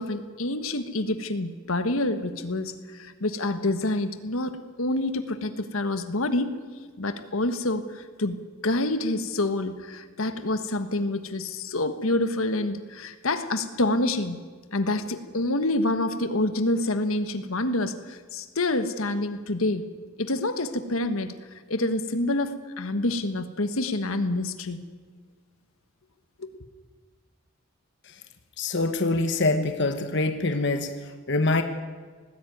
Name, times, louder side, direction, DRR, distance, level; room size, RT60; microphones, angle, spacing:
voice 1, 0.0-6.5 7.0-8.4 8.6-14.4 14.7-19.9 20.2-21.3 21.7-24.8 26.4-26.5, left 2 dB, 75° left, 10 dB, 1.4 m, -27 dB
voice 2, 28.6-31.6, left 2 dB, 55° left, 7 dB, 1.2 m, -25 dB
19.5 x 15.5 x 9.3 m, 1.5 s
head